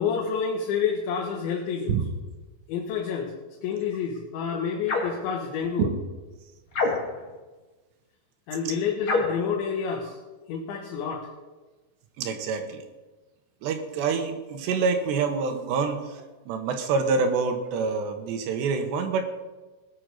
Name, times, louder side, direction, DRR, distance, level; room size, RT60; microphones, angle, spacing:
voice 1, 0.0-2.0 2.7-3.3 3.6-5.9 8.5-10.2 10.5-11.3, left 6 dB, 80° left, 0 dB, 3.8 m, -28 dB
sound 1, 4.8-5.2 6.7-7.3 9.0-9.4, left 3 dB, 45° left, 1.8 m, -26 dB
voice 2, 12.2-12.8 13.6-19.3, right 5 dB, 75° right, 6 dB, 3.3 m, -26 dB
19.0 x 7.6 x 6.6 m, 1.2 s
omnidirectional pair, 5.3 m